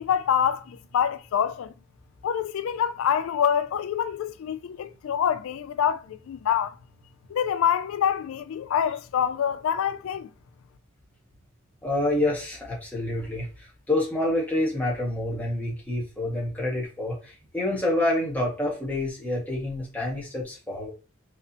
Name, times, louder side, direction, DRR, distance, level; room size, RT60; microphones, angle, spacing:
voice 1, 0.0-1.7 2.2-6.8 7.3-10.3, left 8 dB, 80° left, 0.3 m, -26 dB
voice 2, 11.8-20.9, left 1 dB, 10° left, 1.8 m, -28 dB
4.8 x 3.3 x 2.9 m
head